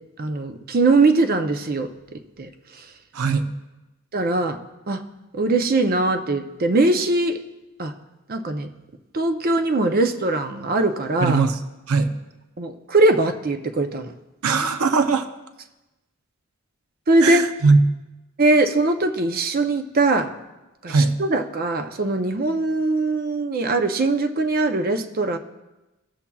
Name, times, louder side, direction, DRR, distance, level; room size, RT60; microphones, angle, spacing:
voice 1, 0.2-1.9 2.4-2.5 4.1-4.6 4.9-5.0 5.3-7.4 7.8-7.9 8.3-8.7 9.1-11.4 12.6-14.1 17.1-17.5 18.4-20.3 20.8-25.4, right 2 dB, 45° right, 7 dB, 0.6 m, -21 dB
voice 2, 11.2-11.6 11.9-12.1 14.4-15.3 17.2-17.8 20.9-21.1, right 4 dB, 85° right, 8 dB, 0.6 m, -19 dB
17.0 x 7.1 x 2.3 m, 1.0 s
head